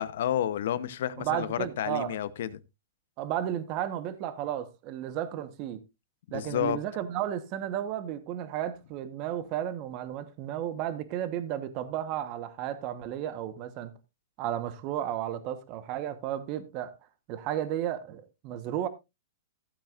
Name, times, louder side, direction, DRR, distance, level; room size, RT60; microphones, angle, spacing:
voice 1, 0.0-2.6 6.3-6.8, left 10 dB, 65° left, 0.9 m, -30 dB
voice 2, 1.2-2.2 3.2-5.8 6.3-13.9 14.4-16.9 17.3-18.9, right 11 dB, 35° right, 1.2 m, -33 dB
15.0 x 8.7 x 2.5 m
hypercardioid pair, 150°, 0 cm